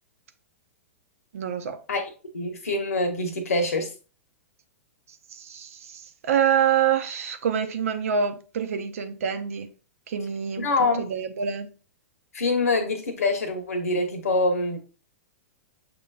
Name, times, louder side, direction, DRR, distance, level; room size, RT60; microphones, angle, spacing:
voice 1, 1.3-1.8 5.3-9.7 10.1-11.7, right 8 dB, 70° right, 0.7 m, -26 dB
voice 2, 2.3-3.9 10.6-11.1 12.3-14.8, left 2 dB, 80° left, 1.1 m, -25 dB
6.9 x 3.0 x 2.3 m
hypercardioid pair, 115°, 8 cm